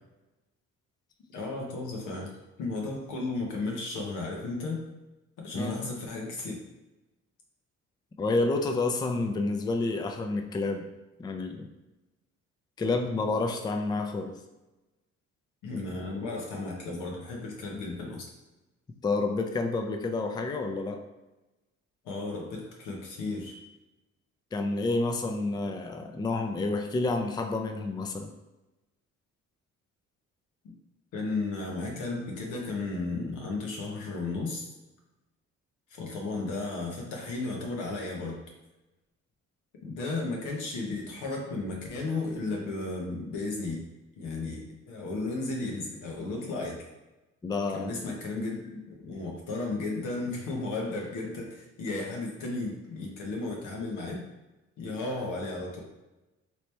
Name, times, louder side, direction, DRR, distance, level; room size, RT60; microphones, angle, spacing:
voice 1, 1.3-4.9 5.4-6.6 15.6-18.3 22.0-23.6 31.1-34.7 35.9-38.4 39.8-43.8 44.2-46.8 47.7-54.2 54.8-55.8, left 3 dB, 90° left, 0 dB, 0.9 m, -34 dB
voice 2, 5.5-5.9 8.2-10.9 11.2-11.7 12.8-14.3 19.0-21.0 24.5-28.3 47.4-48.0, left 3 dB, 15° left, 5 dB, 0.3 m, -29 dB
3.1 x 2.9 x 3.2 m, 1.0 s
cardioid pair, 90°, 30 cm